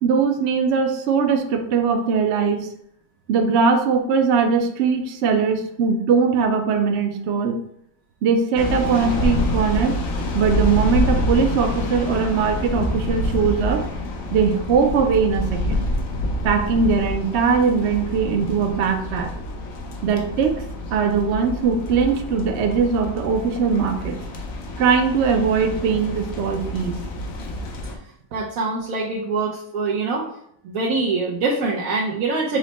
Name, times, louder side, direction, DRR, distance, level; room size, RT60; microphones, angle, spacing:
voice 1, 0.0-2.7 3.3-7.6 8.2-10.0 10.3-13.8 14.3-15.9 16.4-19.3 20.0-20.5 20.9-24.2 24.8-27.0, right 5 dB, 65° right, 4 dB, 0.7 m, -20 dB
sound 1, 8.6-28.0, left 1 dB, 80° left, 1.2 m, -27 dB
voice 2, 28.3-30.3 30.6-32.6, right 3 dB, 85° right, -3 dB, 1.1 m, -24 dB
6.3 x 2.1 x 4.0 m, 0.70 s
omnidirectional pair, 1.4 m